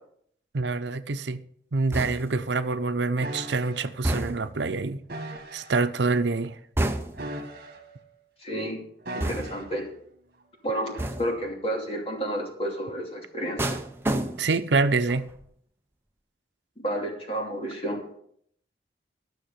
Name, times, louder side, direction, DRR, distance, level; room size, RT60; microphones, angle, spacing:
voice 1, 0.5-1.4 1.7-6.6 14.4-15.2, right 3 dB, 80° right, 0.7 m, -26 dB
sound 1, 1.9-2.5 4.0-4.6 6.8-7.4 9.2-9.8 11.0-11.4 13.6-14.7 15.1-15.5, right 1 dB, 15° right, 0.7 m, -30 dB
sound 2, 3.2-3.8 5.1-5.8 7.1-8.0 9.1-9.8 10.9-11.2, right 1 dB, 55° right, 1.8 m, -38 dB
voice 2, 8.4-8.8 9.1-9.9 10.6-13.8 16.8-18.0, right 1 dB, 30° left, 2.7 m, -31 dB
13.0 x 6.5 x 6.7 m
head